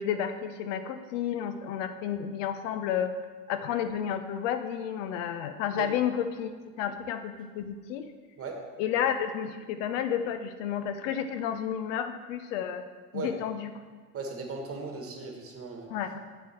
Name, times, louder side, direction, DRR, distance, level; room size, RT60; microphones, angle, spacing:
voice 1, 0.0-3.1 3.5-6.5 6.8-8.1 8.8-12.8 13.1-13.7 15.9-16.2, left 9 dB, 55° left, 9 dB, 0.7 m, -31 dB
voice 2, 14.1-15.9, right 4 dB, 30° right, 3 dB, 1.7 m, -37 dB
9.0 x 8.3 x 4.5 m, 1.4 s
figure-of-eight pair, 70°, 46 cm